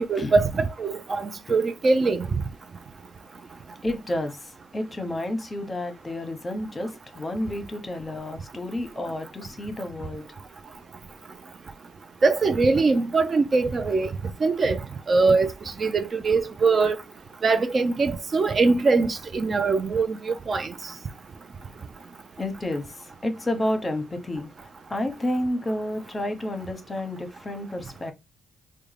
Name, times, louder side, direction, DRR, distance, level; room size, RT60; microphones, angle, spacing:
voice 1, 0.1-2.3 12.2-14.1 14.4-14.8 15.1-15.5 15.8-17.0 17.4-20.7, right 4 dB, 40° right, 0.4 m, -22 dB
voice 2, 3.8-10.2 22.4-22.9 23.2-24.5 24.9-28.1, left 1 dB, 25° left, 0.9 m, -30 dB
3.6 x 2.2 x 3.2 m
cardioid pair, 90°, 0 cm